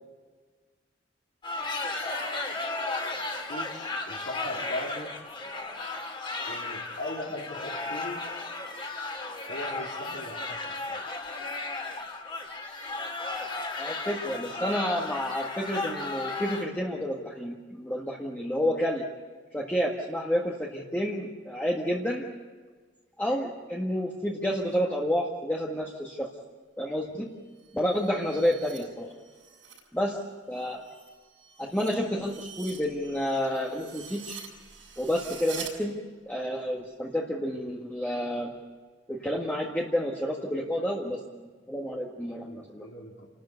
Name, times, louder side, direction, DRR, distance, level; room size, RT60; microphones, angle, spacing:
sound 1, 1.4-16.6, left 3 dB, 25° left, 2.8 m, -35 dB
voice 1, 3.5-5.1 6.5-8.3 9.5-11.0 42.4-43.3, left 1 dB, 65° left, -2 dB, 3.7 m, -39 dB
voice 2, 13.8-19.0 19.5-22.3 23.2-26.3 26.8-27.3 27.7-29.1 29.9-30.2 30.5-30.8 31.6-34.4 35.0-36.0 36.3-38.5 39.1-42.9, equal, 10° left, -3 dB, 1.7 m, -30 dB
sound 2, 27.5-29.9 30.2-35.7, right 7 dB, 75° right, 6.6 m, -46 dB
29.5 x 13.0 x 8.2 m, 1.5 s
head